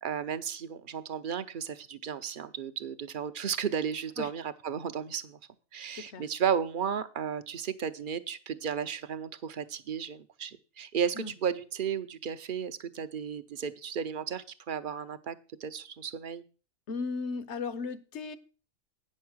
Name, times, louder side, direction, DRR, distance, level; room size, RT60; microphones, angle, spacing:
voice 1, 0.0-5.4 5.7-16.4, right 7 dB, 50° right, 12 dB, 0.6 m, -34 dB
voice 2, 6.0-6.3 11.1-11.3 16.9-18.4, left 4 dB, 60° left, 13 dB, 1.1 m, -36 dB
9.3 x 6.4 x 6.1 m, 0.36 s
omnidirectional pair, 1.4 m